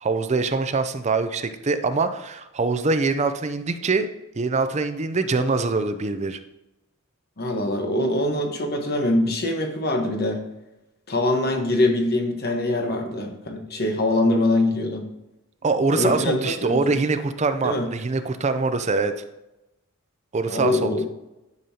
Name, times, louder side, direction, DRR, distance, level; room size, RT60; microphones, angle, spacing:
voice 1, 0.0-4.1 4.4-6.4 15.6-19.1 20.3-20.9, right 3 dB, 30° right, 9 dB, 0.5 m, -23 dB
voice 2, 7.4-10.4 11.1-15.0 16.0-16.8 17.6-17.9 20.5-21.0, left 1 dB, 45° left, 3 dB, 1.2 m, -23 dB
10.5 x 5.4 x 2.8 m, 0.94 s
head